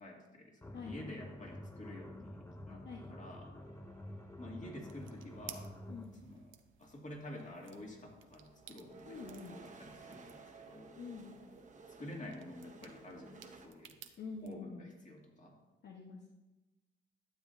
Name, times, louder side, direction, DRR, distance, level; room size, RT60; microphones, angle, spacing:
voice 1, 0.0-3.5 4.4-5.7 6.2-6.5 6.8-11.0 12.0-14.0 14.4-15.6, left 1 dB, 40° left, -1 dB, 2.3 m, -49 dB
sound 1, 0.6-6.3, left 1 dB, 10° left, 0.6 m, -49 dB
sound 2, 3.6-5.8 6.8-6.9 7.2-13.7, right 4 dB, 40° right, 1.1 m, -57 dB
sound 3, 4.8-14.5, right 10 dB, 80° right, 0.7 m, -58 dB
voice 2, 9.1-9.6 11.0-11.3 14.2-14.8 15.8-16.3, left 5 dB, 60° left, -1 dB, 1.1 m, -46 dB
12.5 x 7.4 x 2.7 m, 1.1 s
cardioid pair, 80°, 20 cm